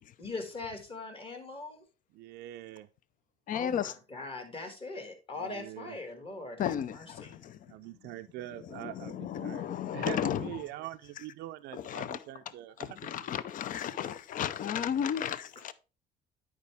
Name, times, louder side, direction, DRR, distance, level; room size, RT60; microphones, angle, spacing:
voice 1, 0.2-1.8 3.5-7.4, left 3 dB, 35° left, 2.0 m, -41 dB
voice 2, 2.1-2.9 5.4-6.0 7.7-13.3, right 15 dB, 80° right, 0.4 m, -44 dB
voice 3, 3.5-3.9 6.6-7.6 8.7-10.5 11.7-12.2 12.8-15.7, left 9 dB, 50° left, 0.5 m, -33 dB
9.4 x 4.9 x 3.4 m
cardioid pair, 110°, 17 cm